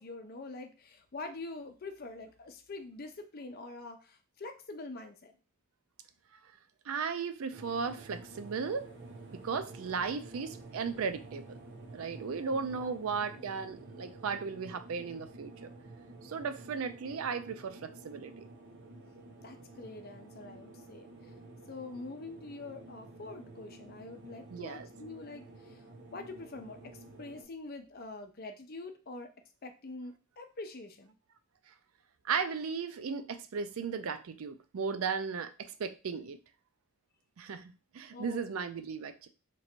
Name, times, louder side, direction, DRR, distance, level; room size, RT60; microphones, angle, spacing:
voice 1, 0.0-5.3 12.7-12.9 19.4-21.3 21.7-25.8 26.1-29.3 29.6-31.1 38.1-38.4, left 3 dB, 45° left, 0.6 m, -45 dB
voice 2, 6.9-8.9 9.3-11.4 11.9-15.7 16.2-18.4 24.5-24.9 32.2-36.4 37.4-39.3, right 5 dB, 75° right, 0.4 m, -36 dB
sound 1, 7.5-27.4, right 2 dB, 55° right, 0.8 m, -50 dB
3.0 x 2.5 x 4.3 m
head